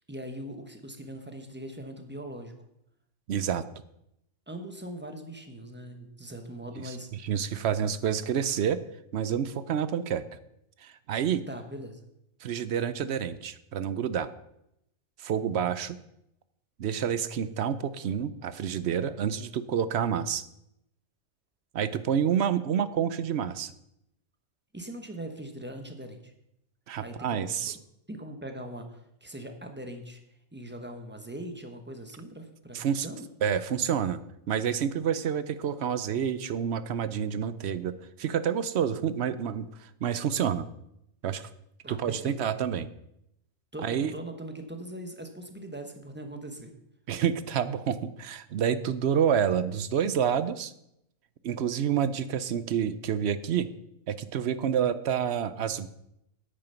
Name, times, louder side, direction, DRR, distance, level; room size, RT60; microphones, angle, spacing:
voice 1, 0.1-2.5 4.5-7.3 11.5-12.0 24.7-26.3 27.0-27.5 28.1-30.2 30.5-33.3 41.8-42.5 43.7-46.7, right 1 dB, 10° right, 5 dB, 1.1 m, -41 dB
voice 2, 3.3-3.6 6.8-7.0 7.2-8.8 9.1-10.2 10.8-11.4 12.4-14.3 15.2-16.0 16.8-20.4 21.7-23.7 26.9-27.8 32.7-33.1 33.4-34.2 34.5-40.7 41.2-41.5 41.9-42.9 43.8-44.1 47.1-50.7 51.4-53.7 54.1-55.9, right 8 dB, 65° right, 14 dB, 0.8 m, -28 dB
9.0 x 8.8 x 5.7 m, 0.79 s
omnidirectional pair, 1.3 m